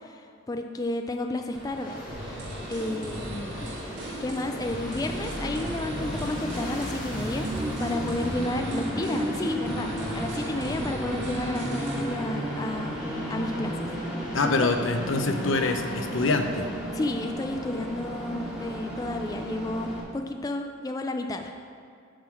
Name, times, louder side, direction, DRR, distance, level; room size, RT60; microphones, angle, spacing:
voice 1, 0.0-2.0 2.7-3.7 4.2-7.5 7.8-13.0 13.3-13.9 16.9-21.5, left 2 dB, 20° left, 4 dB, 0.3 m, -32 dB
Train, 1.5-20.0, right 1 dB, 5° right, 1.6 m, -34 dB
Aircraft, 1.7-11.8 12.2-17.2, left 1 dB, 45° left, 1.7 m, -42 dB
sound 1, 2.1-12.2, right 1 dB, 60° right, 1.1 m, -40 dB
voice 2, 14.3-16.7, left 3 dB, 80° left, 6 dB, 0.8 m, -25 dB
10.5 x 3.7 x 7.4 m, 2.3 s
head